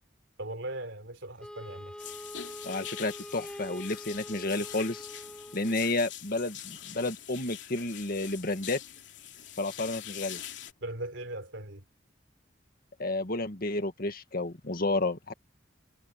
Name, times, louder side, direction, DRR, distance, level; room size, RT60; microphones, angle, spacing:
voice 1, 0.4-2.0 10.8-11.8, right 1 dB, 75° right, 3.9 m, -39 dB
Wind instrument woodwind instrument, 1.4-5.8, equal, 5° left, 6.7 m, -44 dB
sound 1, 2.0-10.7, left 10 dB, 70° left, 3.0 m, -44 dB
voice 2, 2.6-5.1 5.5-8.8 9.6-10.4 13.0-15.3, left 2 dB, 50° left, 1.9 m, -31 dB
head